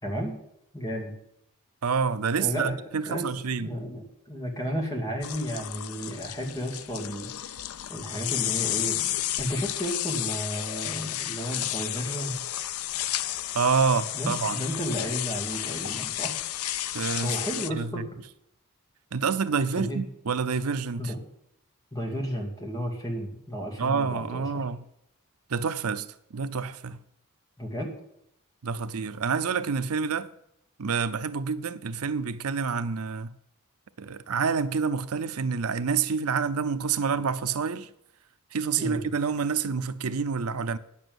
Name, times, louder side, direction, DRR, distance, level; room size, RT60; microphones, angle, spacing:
voice 1, 0.0-0.4 0.7-1.1 2.4-2.8 3.1-3.3 3.6-7.5 7.9-9.0 9.4-12.3 14.1-16.3 17.2-18.1 19.8-20.0 21.0-21.2 21.9-24.6 27.6-27.9 38.8-39.1, equal, 15° left, 2.5 m, -33 dB
voice 2, 1.8-3.7 13.5-14.6 16.9-17.4 17.7-18.1 19.1-21.1 23.8-24.8 25.5-26.1 26.3-27.0 28.6-30.3 30.8-33.3 34.0-37.9 38.5-40.8, right 5 dB, 80° right, 0.6 m, -28 dB
sound 1, 5.2-17.7, left 13 dB, 75° left, 0.5 m, -32 dB
9.9 x 7.2 x 7.9 m
head